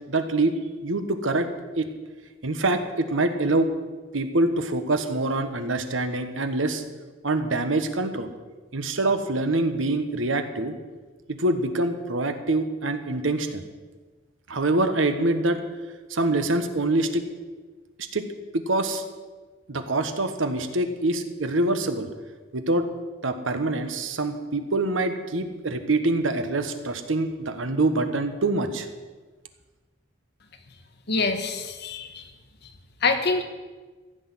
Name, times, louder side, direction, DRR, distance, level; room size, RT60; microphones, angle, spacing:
voice 1, 0.1-0.5 0.8-1.5 1.8-1.9 2.4-3.7 4.1-6.8 7.2-8.3 8.7-10.7 11.3-13.6 14.5-15.6 16.1-17.2 18.1-18.2 18.5-19.0 19.7-22.1 22.5-22.8 23.2-28.9, right 2 dB, 90° right, 8 dB, 1.3 m, -25 dB
voice 2, 31.1-32.3 33.0-33.4, left 4 dB, 60° left, 6 dB, 1.5 m, -25 dB
15.0 x 6.4 x 9.7 m, 1.3 s
head